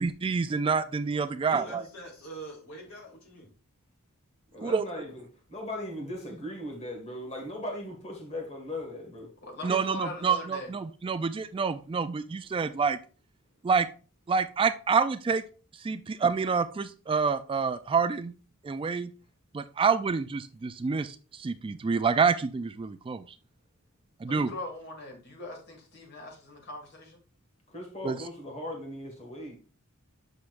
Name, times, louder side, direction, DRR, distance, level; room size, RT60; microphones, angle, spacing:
voice 1, 0.0-1.8 4.6-4.9 9.6-13.0 13.6-13.9 14.3-15.4 15.8-18.3 18.6-19.1 19.5-23.2 24.2-24.5 28.0-28.2, right 5 dB, 25° right, 0.3 m, -27 dB
voice 2, 1.4-3.5, right 2 dB, 80° left, 3.6 m, -44 dB
voice 3, 4.5-9.3 27.7-29.6, left 1 dB, 30° left, 1.9 m, -38 dB
voice 4, 9.4-10.7 24.3-27.2, left 2 dB, 50° left, 2.1 m, -41 dB
8.0 x 5.8 x 2.5 m
head